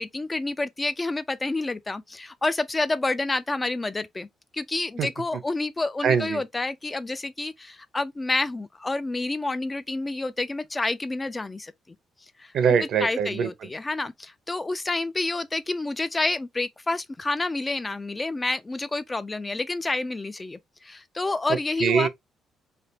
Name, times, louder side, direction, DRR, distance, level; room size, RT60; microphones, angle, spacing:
voice 1, 0.0-4.3 4.5-12.0 12.4-12.5 13.0-22.1, left 2 dB, 20° left, 0.3 m, -29 dB
voice 2, 6.0-6.4 12.5-13.5 21.5-22.1, right 7 dB, 70° right, 0.7 m, -23 dB
3.3 x 2.4 x 2.7 m
cardioid pair, 90°, 0 cm